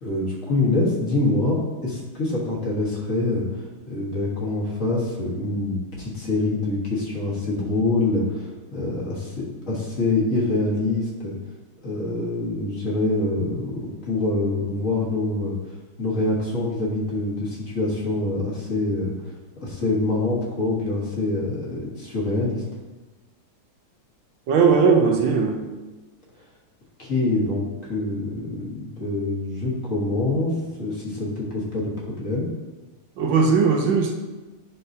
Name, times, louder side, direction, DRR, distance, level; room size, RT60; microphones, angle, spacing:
voice 1, 0.0-3.4 3.9-11.3 11.8-15.5 16.0-19.1 19.6-22.6 27.0-32.5, left 2 dB, 45° left, -4 dB, 1.5 m, -25 dB
voice 2, 24.5-25.6 33.2-34.1, right 5 dB, 75° right, 3 dB, 1.3 m, -18 dB
10.5 x 3.8 x 2.7 m, 1.2 s
omnidirectional pair, 2.3 m